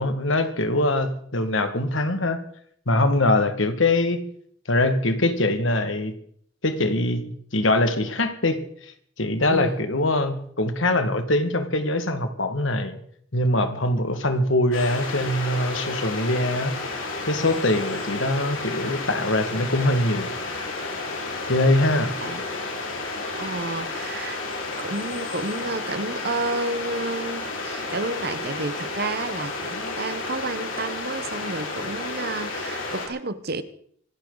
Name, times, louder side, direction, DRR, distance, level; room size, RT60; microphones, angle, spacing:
voice 1, 0.0-2.4 2.9-4.2 4.7-6.1 6.6-7.2 7.5-13.0 13.3-16.7 17.3-20.3 21.5-22.1, left 1 dB, 75° left, 1.9 m, -23 dB
voice 2, 9.5-9.9 22.2-22.4 23.3-24.4 24.8-33.6, right 2 dB, 50° right, 1.1 m, -31 dB
sound 1, 14.7-33.1, left 3 dB, 90° left, 4.6 m, -31 dB
25.5 x 12.0 x 4.0 m
head